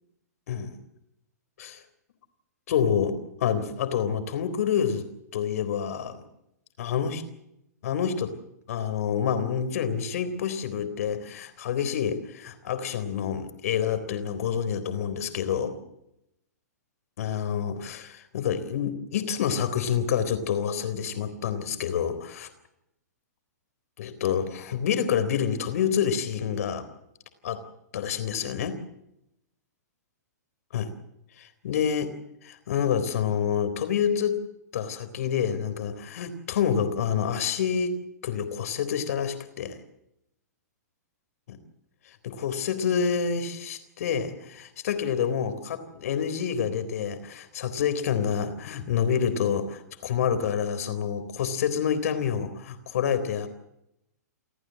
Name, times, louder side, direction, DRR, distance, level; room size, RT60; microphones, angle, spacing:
voice 1, 0.5-0.8 1.6-1.8 2.7-6.2 6.8-7.2 7.8-8.3 8.7-15.8 17.2-22.5 24.0-26.9 27.4-27.6 27.9-28.8 30.7-30.9 31.4-32.1 32.4-34.4 34.7-38.0 38.2-39.8 41.5-41.6 42.0-53.5, left 7 dB, 60° left, 11 dB, 3.7 m, -28 dB
29.0 x 14.5 x 7.7 m, 0.82 s
hypercardioid pair, 115°, 9 cm